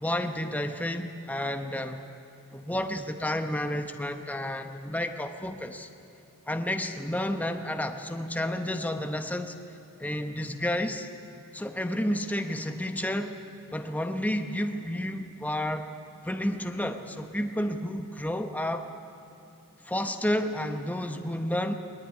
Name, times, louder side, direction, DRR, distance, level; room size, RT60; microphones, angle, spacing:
voice 1, 0.0-2.0 2.5-5.9 6.5-9.6 10.0-11.1 11.5-13.3 13.7-15.9 16.2-18.9 19.8-21.7, left 1 dB, 5° left, 6 dB, 0.9 m, -31 dB
21.0 x 20.0 x 9.6 m, 2.7 s
head